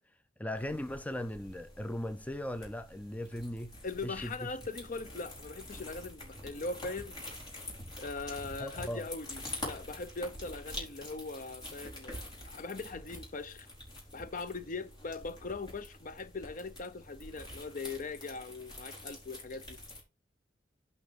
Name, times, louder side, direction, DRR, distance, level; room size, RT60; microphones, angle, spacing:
voice 1, 0.4-3.7 4.0-4.6 8.6-9.0, left 1 dB, 10° left, 0.5 m, -38 dB
sound 1, 0.5-20.0, left 1 dB, 25° left, 4.8 m, -46 dB
voice 2, 3.8-7.2 8.0-13.7 14.1-19.8, left 3 dB, 45° left, 0.7 m, -40 dB
9.2 x 5.3 x 4.0 m
head